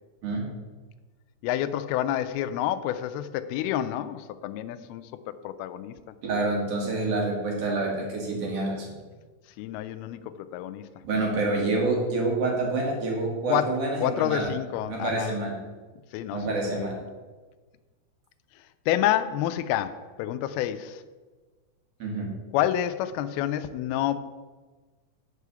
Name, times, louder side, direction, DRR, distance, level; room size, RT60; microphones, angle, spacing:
voice 1, 1.4-5.0 5.4-5.9 9.6-10.8 13.5-13.7 14.0-15.4 16.1-16.9 18.9-21.0 22.5-24.2, left 11 dB, 85° left, 11 dB, 2.5 m, -28 dB
voice 2, 6.2-9.0 11.0-14.5 14.9-15.5 16.3-17.0 22.0-22.3, right 2 dB, 45° right, -1 dB, 2.7 m, -27 dB
10.5 x 4.8 x 6.8 m, 1.3 s
omnidirectional pair, 4.4 m